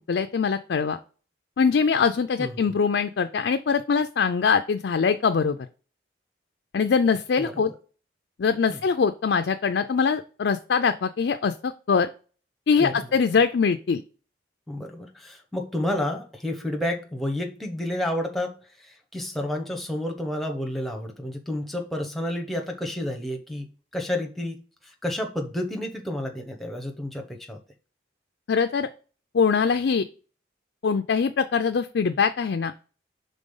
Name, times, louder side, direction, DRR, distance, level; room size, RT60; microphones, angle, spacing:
voice 1, 0.1-1.0 1.6-5.6 6.7-7.7 8.4-12.1 12.7-14.0 28.5-28.9 29.3-30.1 30.8-32.7, left 5 dB, 65° left, 0.4 m, -23 dB
voice 2, 2.4-2.7 7.4-7.7 8.7-8.8 12.8-13.2 14.7-23.7 23.9-27.6, left 1 dB, ahead, 0.8 m, -30 dB
5.2 x 3.8 x 5.4 m
head